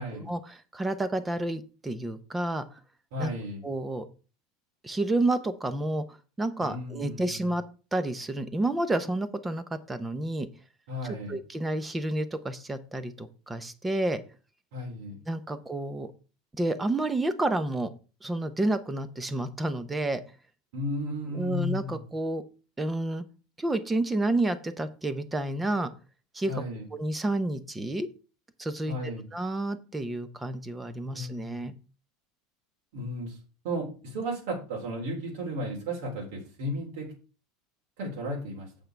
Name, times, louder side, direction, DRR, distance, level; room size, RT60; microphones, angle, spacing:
voice 1, 0.1-2.6 3.2-3.3 3.6-4.1 4.8-6.0 6.4-7.6 7.9-10.5 11.0-14.2 15.3-16.1 16.5-17.9 18.2-20.2 21.3-22.4 22.8-23.2 23.6-25.9 26.3-26.6 26.9-28.1 28.6-28.9 29.3-31.7, right 2 dB, 10° right, 12 dB, 0.8 m, -30 dB
voice 2, 3.1-3.7 6.6-7.5 10.9-11.4 14.7-15.2 20.7-22.0 26.5-26.9 28.9-29.2 31.1-31.6 32.9-33.4 33.6-37.1 38.0-38.7, equal, 65° right, -1 dB, 3.4 m, -34 dB
8.3 x 6.8 x 4.6 m, 0.35 s
supercardioid pair, 165°, 0 cm